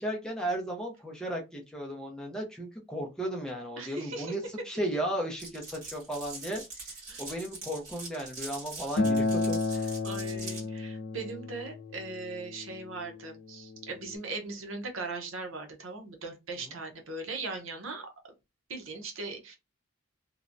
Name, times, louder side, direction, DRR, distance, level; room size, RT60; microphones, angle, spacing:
voice 1, 0.0-6.6 7.2-9.9 16.6-16.8, right 1 dB, 5° left, 0.5 m, -35 dB
voice 2, 3.8-4.3 7.1-7.2 10.0-18.1 18.7-19.6, right 3 dB, 80° right, 0.7 m, -39 dB
Glass, 5.4-10.6, right 3 dB, 40° right, 1.6 m, -43 dB
Acoustic guitar, 9.0-14.2, left 3 dB, 60° left, 0.4 m, -32 dB
3.0 x 2.2 x 2.5 m
head